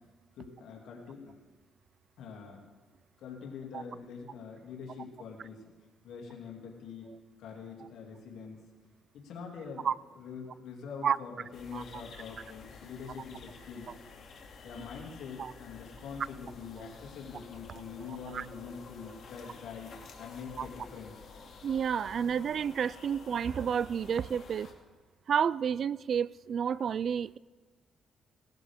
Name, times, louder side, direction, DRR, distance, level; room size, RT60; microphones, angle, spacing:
voice 1, 0.4-1.3 2.2-2.6 3.2-5.6 6.0-7.1 7.4-8.6 9.1-9.9 10.1-13.9 14.6-21.2, left 6 dB, 80° left, 2.7 m, -44 dB
sound 1, 11.5-24.7, left 5 dB, 60° left, 2.4 m, -51 dB
voice 2, 18.1-18.5 20.6-20.7 21.6-24.7 25.3-27.4, right 7 dB, 55° right, 0.3 m, -30 dB
19.0 x 13.0 x 3.6 m
cardioid pair, 90°, 0 cm